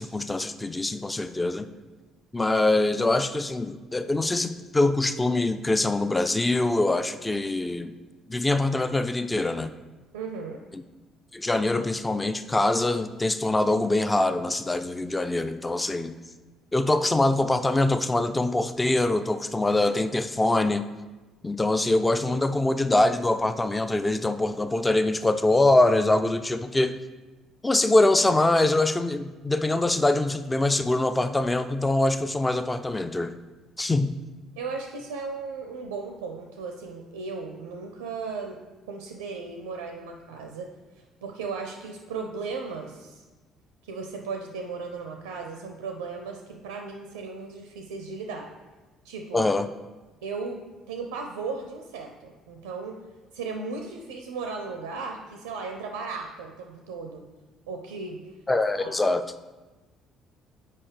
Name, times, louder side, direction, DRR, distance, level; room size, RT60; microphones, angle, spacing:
voice 1, 0.0-1.7 2.3-7.9 8.3-9.7 10.7-10.8 11.3-16.1 16.7-20.8 21.4-27.0 27.6-33.3 33.8-34.1 49.3-49.7 58.5-59.2, left 2 dB, 15° left, 10 dB, 0.4 m, -24 dB
voice 2, 10.1-10.6 34.6-38.6 38.9-40.7 41.2-43.2 43.8-48.5 49.0-49.5 50.2-50.6 50.9-53.0 53.3-57.2 57.7-58.2 58.8-58.9, right 4 dB, 70° right, 3 dB, 0.4 m, -36 dB
8.3 x 5.3 x 3.3 m, 1.2 s
figure-of-eight pair, 50°, 0 cm